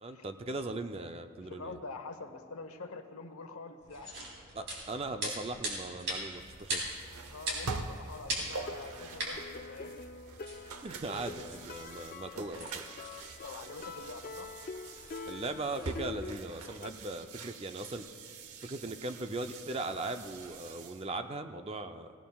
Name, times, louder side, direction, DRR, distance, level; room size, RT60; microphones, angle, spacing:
voice 1, 0.0-1.8 4.5-6.8 10.8-12.8 15.2-18.1 18.6-22.1, right 2 dB, 25° right, 8 dB, 0.4 m, -39 dB
voice 2, 1.4-4.4 7.3-10.1 12.3-12.5 13.4-14.5, left 3 dB, 75° left, 7 dB, 1.0 m, -46 dB
sound 1, 3.8-16.0, right 1 dB, 50° right, 3.5 m, -42 dB
sound 2, 6.4-21.1, right 4 dB, 85° right, 0.8 m, -45 dB
sound 3, 8.4-16.9, left 4 dB, 40° left, 0.4 m, -46 dB
17.5 x 17.5 x 2.3 m, 2.7 s
head